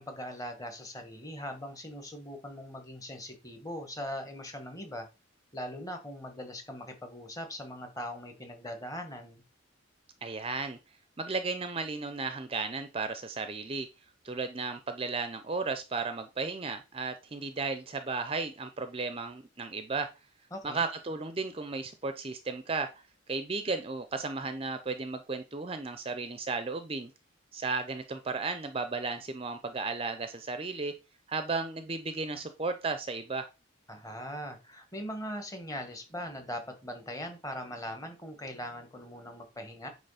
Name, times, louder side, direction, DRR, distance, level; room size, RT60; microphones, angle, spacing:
voice 1, 0.0-5.1 5.5-9.4 20.5-20.8 33.9-39.9, equal, 15° left, 5 dB, 1.4 m, -40 dB
voice 2, 10.2-10.8 11.2-13.9 14.2-20.1 20.6-23.0 23.3-27.1 27.5-30.9 31.3-33.5, right 4 dB, 25° right, 9 dB, 0.6 m, -34 dB
8.8 x 3.1 x 5.7 m, 0.28 s
head